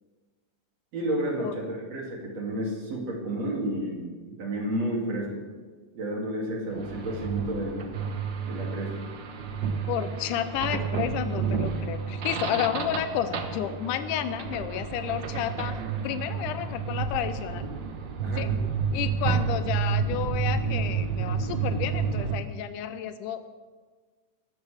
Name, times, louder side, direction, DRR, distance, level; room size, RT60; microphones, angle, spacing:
voice 1, 0.9-5.4 5.9-7.8 8.4-9.0 18.2-18.5, right 1 dB, 55° right, -2 dB, 3.8 m, -31 dB
sound 1, 6.7-22.4, right 6 dB, 80° right, 1.0 m, -30 dB
voice 2, 9.9-15.8 16.0-17.6 18.4-18.5 18.9-23.5, left 10 dB, 90° left, 10 dB, 2.2 m, -31 dB
23.5 x 13.5 x 3.5 m, 1.5 s
omnidirectional pair, 3.6 m